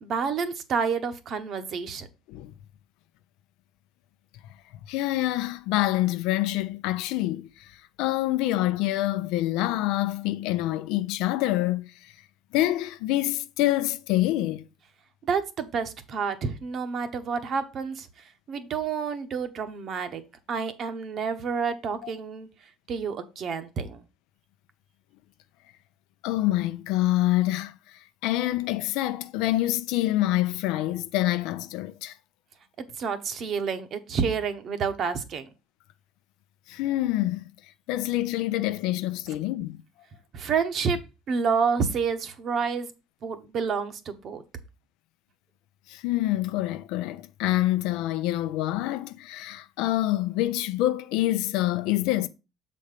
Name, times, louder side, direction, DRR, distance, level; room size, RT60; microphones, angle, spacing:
voice 1, 0.0-2.1 15.2-18.1 18.5-20.2 20.5-22.5 22.9-24.0 33.0-35.5 40.3-41.0 41.3-42.9 43.2-44.4, right 5 dB, 50° right, 1.0 m, -29 dB
voice 2, 4.9-7.7 8.0-11.9 12.5-14.6 22.0-22.1 26.2-27.7 28.2-32.1 36.7-37.5 37.9-39.8 45.9-52.3, left 15 dB, 80° left, 0.5 m, -26 dB
6.8 x 4.2 x 5.0 m
cardioid pair, 120°, 0 cm